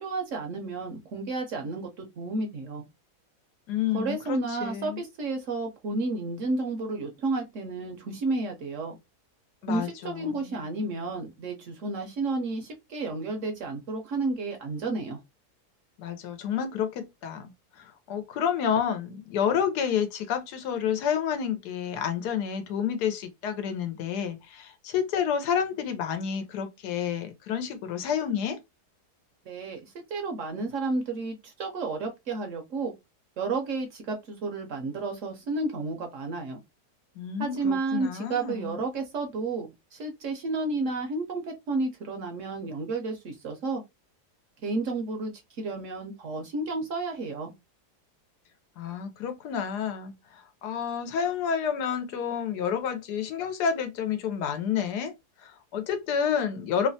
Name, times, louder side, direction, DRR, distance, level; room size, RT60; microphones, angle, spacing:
voice 1, 0.0-2.8 3.9-9.0 9.7-15.2 29.5-32.9 33.4-36.6 37.4-43.8 44.6-47.5, right 3 dB, 65° right, 0.8 m, -31 dB
voice 2, 3.7-5.0 9.6-10.6 16.0-17.5 18.1-28.6 37.2-38.8 48.8-55.1 55.4-56.9, left 8 dB, 85° left, 1.2 m, -29 dB
3.1 x 2.1 x 2.6 m
omnidirectional pair, 1.7 m